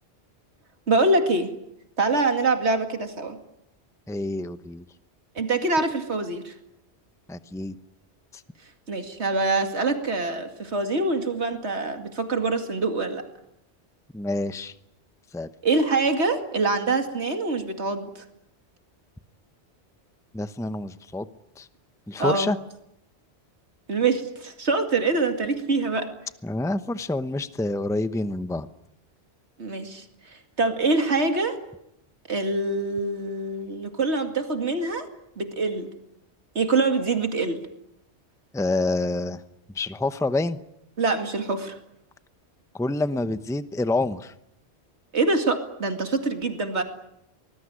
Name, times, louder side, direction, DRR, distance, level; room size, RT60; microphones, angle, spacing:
voice 1, 0.9-1.5 2.0-3.4 5.4-6.5 8.9-13.2 15.6-18.2 22.2-22.5 23.9-26.1 29.6-31.6 32.3-35.1 35.4-35.9 36.5-37.6 41.0-41.8 45.1-46.8, right 3 dB, 85° right, 6 dB, 2.6 m, -25 dB
voice 2, 4.1-4.8 7.3-7.7 8.3-8.4 14.1-14.7 15.3-15.5 20.3-21.3 21.6-21.7 22.1-22.6 26.4-28.7 38.5-39.4 39.7-40.6 42.7-44.3, left 2 dB, 5° left, 12 dB, 0.8 m, -27 dB
24.5 x 20.5 x 9.9 m, 0.82 s
omnidirectional pair, 1.1 m